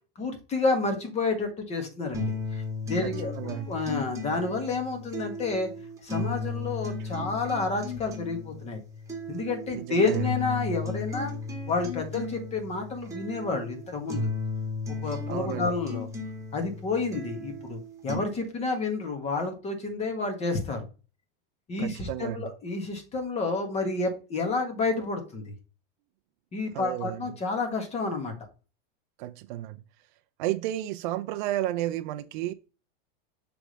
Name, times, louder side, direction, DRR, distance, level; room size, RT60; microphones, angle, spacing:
voice 1, 0.1-5.7 6.0-8.8 9.3-11.3 11.7-14.3 14.9-16.1 16.5-20.9 21.7-25.5 26.5-28.3, left 3 dB, 20° left, 1.5 m, -30 dB
sound 1, 2.1-18.1, left 3 dB, 10° right, 1.8 m, -35 dB
voice 2, 3.0-3.7 7.2-7.3 9.7-10.2 15.3-15.7 21.8-22.5 26.7-27.2 29.2-29.8 30.4-32.5, right 14 dB, 55° right, 0.4 m, -32 dB
6.2 x 3.4 x 5.1 m
supercardioid pair, 150°, 29 cm